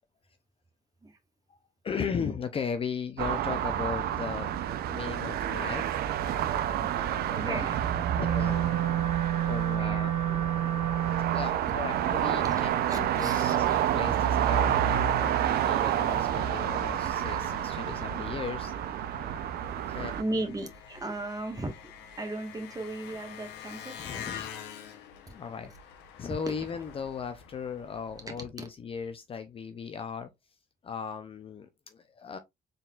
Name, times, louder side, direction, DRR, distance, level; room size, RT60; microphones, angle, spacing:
voice 1, 1.5-6.0 7.5-7.6 8.2-8.7 9.5-10.4 11.3-13.7 13.9-18.7 19.9-20.1 24.0-24.5 25.2-25.7 26.2-30.3 30.8-32.4, left 6 dB, 35° left, 0.5 m, -37 dB
sound 1, 3.2-20.2, right 10 dB, 65° right, 0.6 m, -29 dB
voice 2, 6.5-7.8 8.1-8.2 9.0-9.3 9.8-10.1 12.4-12.6 12.9-13.8 20.2-21.8 22.2-24.1 28.6-28.7, right 2 dB, 20° right, 1.4 m, -37 dB
Wind instrument woodwind instrument, 8.2-11.6, right 11 dB, 85° right, 1.5 m, -29 dB
Engine, 16.3-28.5, left 7 dB, 90° left, 0.9 m, -46 dB
4.2 x 3.9 x 2.4 m
cardioid pair, 110°, 17 cm